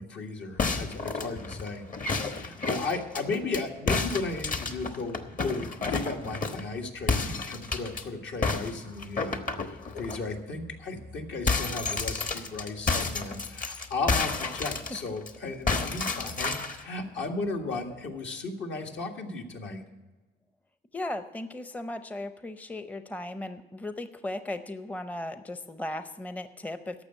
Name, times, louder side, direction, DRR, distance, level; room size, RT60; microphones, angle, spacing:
voice 1, 0.0-1.9 2.2-19.8, left 3 dB, 65° left, 2 dB, 1.7 m, -35 dB
sound 1, 0.6-3.6 3.9-6.7 7.1-8.0 8.4-10.2 10.6-10.7 11.0-15.3 15.7-16.8, left 4 dB, 45° left, 1.2 m, -30 dB
voice 2, 20.9-27.0, left 1 dB, 10° left, 10 dB, 0.6 m, -36 dB
11.5 x 7.0 x 8.9 m, 1.2 s
cardioid pair, 90°, 20 cm